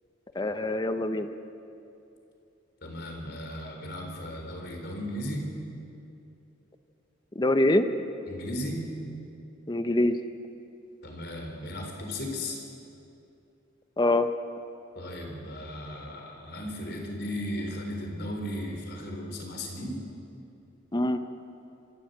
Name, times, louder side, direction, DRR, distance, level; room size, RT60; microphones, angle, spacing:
voice 1, 0.3-1.3 7.4-7.9 9.7-10.2 14.0-14.3 20.9-21.2, left 1 dB, 20° left, 9 dB, 0.8 m, -24 dB
voice 2, 2.8-5.5 8.3-8.9 11.0-12.6 15.0-20.0, left 1 dB, 55° left, 2 dB, 4.0 m, -36 dB
26.0 x 13.5 x 8.0 m, 2.7 s
head